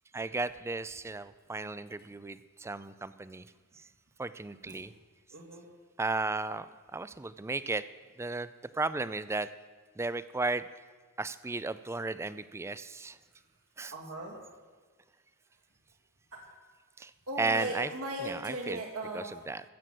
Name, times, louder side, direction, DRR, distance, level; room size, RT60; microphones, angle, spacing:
voice 1, 0.1-3.5 4.2-4.9 6.0-6.7 6.9-7.8 8.2-8.5 8.7-9.5 10.0-10.6 11.2-13.2 13.8-13.9 17.0-17.1 17.4-17.9 18.2-18.8 19.1-19.6, right 3 dB, 10° right, 15 dB, 0.3 m, -34 dB
voice 2, 5.3-5.6 13.9-14.4 16.3-16.4 17.3-19.4, right 1 dB, 75° right, -1 dB, 2.3 m, -38 dB
14.5 x 7.5 x 7.7 m, 1.4 s
head